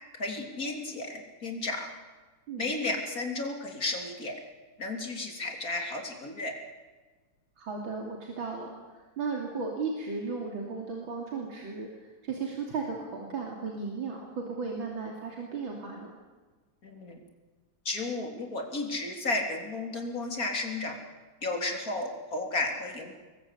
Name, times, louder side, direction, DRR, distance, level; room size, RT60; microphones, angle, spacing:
voice 1, 0.1-1.9 2.6-4.4 4.8-6.5 16.8-17.2 17.9-21.0 21.4-23.1, left 2 dB, 45° left, 2 dB, 3.9 m, -33 dB
voice 2, 7.6-16.1, right 4 dB, 90° right, 0 dB, 3.6 m, -35 dB
26.0 x 21.5 x 8.4 m, 1.3 s
omnidirectional pair, 2.1 m